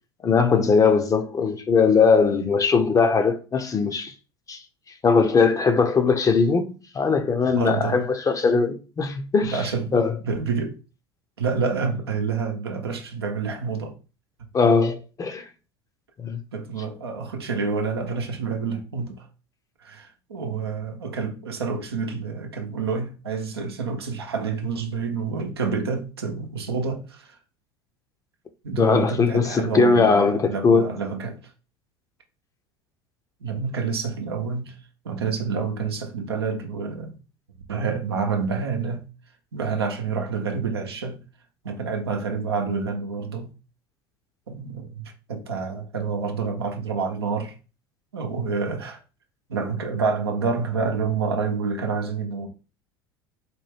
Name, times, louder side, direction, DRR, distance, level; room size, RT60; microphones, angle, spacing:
voice 1, 0.2-4.1 4.5-4.6 5.0-9.6 9.9-10.1 14.5-15.5 16.2-16.4 28.8-30.9, left 5 dB, 25° left, 0.6 m, -20 dB
voice 2, 7.5-8.1 9.4-10.0 10.2-10.8 11.4-14.0 14.4-14.5 16.5-19.3 19.8-27.4 28.6-31.5 33.4-34.8 35.0-37.2 37.7-39.1 39.5-41.2 41.6-43.5 44.5-47.5 48.1-49.0 49.5-52.5, right 5 dB, 85° right, 0.7 m, -28 dB
4.3 x 2.2 x 3.4 m
hypercardioid pair, 75°, 13 cm